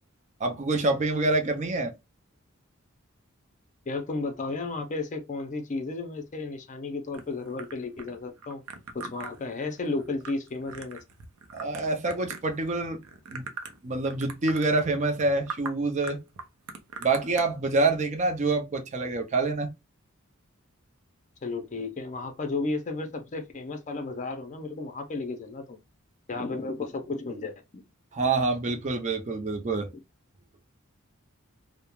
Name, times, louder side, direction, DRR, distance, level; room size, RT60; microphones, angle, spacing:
voice 1, 0.4-1.9 11.5-13.0 13.3-13.5 13.8-16.2 17.0-19.7 28.1-29.9, right 3 dB, 35° right, 0.5 m, -26 dB
voice 2, 3.9-8.6 8.9-11.0 21.4-25.8 26.3-27.8, left 3 dB, 35° left, 0.5 m, -33 dB
sound 1, 7.1-12.7 13.0-13.8 14.1-14.7 15.1-15.2 15.5-15.7 16.0-17.4, right 5 dB, 90° right, 0.5 m, -41 dB
2.3 x 2.1 x 3.0 m
head